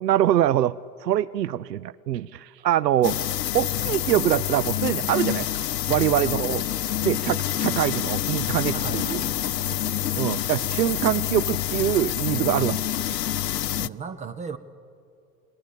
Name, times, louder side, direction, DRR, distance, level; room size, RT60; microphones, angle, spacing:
voice 1, 0.0-0.8 1.0-3.2 3.5-5.5 5.9-6.6 7.0-9.2 10.2-12.8, right 12 dB, 80° right, 21 dB, 0.6 m, -24 dB
sound 1, 3.0-13.9, left 12 dB, 80° left, 0.6 m, -27 dB
voice 2, 6.2-6.6 8.7-9.7 13.7-14.6, right 6 dB, 15° right, 12 dB, 0.6 m, -37 dB
28.5 x 19.5 x 7.0 m, 2.4 s
figure-of-eight pair, 95°, 48 cm